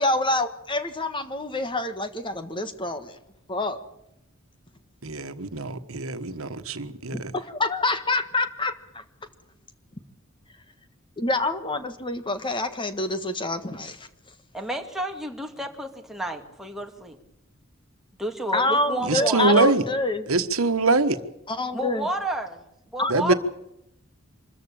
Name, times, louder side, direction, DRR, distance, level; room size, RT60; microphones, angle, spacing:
voice 1, 0.0-3.1 3.5-3.8 7.1-9.0 11.2-14.1 18.5-20.3 21.5-22.1 23.0-23.1, left 2 dB, 25° left, 9 dB, 1.5 m, -27 dB
voice 2, 5.0-7.3 19.0-19.8 20.3-21.2 23.1-23.3, right 3 dB, 80° right, 9 dB, 1.4 m, -23 dB
voice 3, 14.5-17.2 18.2-19.5 21.7-22.6 22.9-23.3, right 1 dB, ahead, 2 dB, 2.3 m, -31 dB
25.0 x 14.5 x 8.6 m, 0.83 s
head